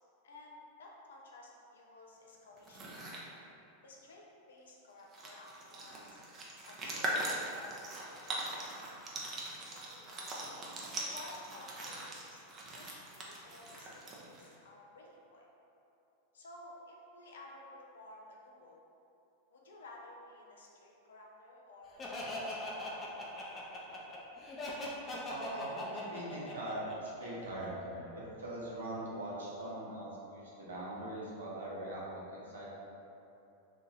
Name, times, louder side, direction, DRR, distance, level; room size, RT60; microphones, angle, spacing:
voice 1, 0.2-2.8 3.8-8.6 9.7-10.6 11.0-12.4 12.7-15.5 16.3-18.8 19.5-23.0, left 2 dB, 75° left, -2 dB, 0.5 m, -54 dB
sound 1, 2.6-3.2 4.7-4.8 5.0-14.5, right 1 dB, 30° right, 0.7 m, -41 dB
Laughter, 22.0-27.7, left 1 dB, 25° left, 0.7 m, -41 dB
voice 2, 25.3-32.7, right 1 dB, 85° right, -6 dB, 0.9 m, -42 dB
3.0 x 2.6 x 3.9 m, 2.8 s
hypercardioid pair, 95°, 0 cm